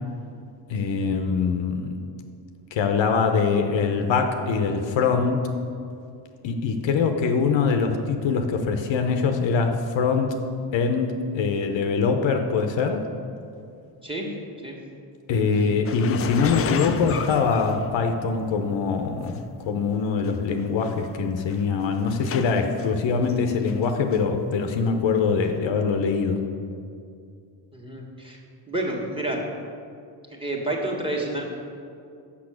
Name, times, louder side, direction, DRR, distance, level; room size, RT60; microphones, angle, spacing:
voice 1, 0.7-2.0 2.7-5.5 6.4-10.3 10.7-13.1 15.3-26.4, left 5 dB, 65° left, 5 dB, 0.8 m, -23 dB
sound 1, 15.8-18.4 19.3-19.4 20.3-20.4 20.6-20.9 21.5-22.9 23.3-23.8 24.1-24.2 25.4-25.5, left 7 dB, 30° left, 0.4 m, -32 dB
voice 2, 27.7-28.4 28.7-29.5 30.3-31.5, right 1 dB, 10° right, 0 dB, 1.6 m, -29 dB
6.1 x 5.8 x 6.3 m, 2.4 s
supercardioid pair, 65°, 48 cm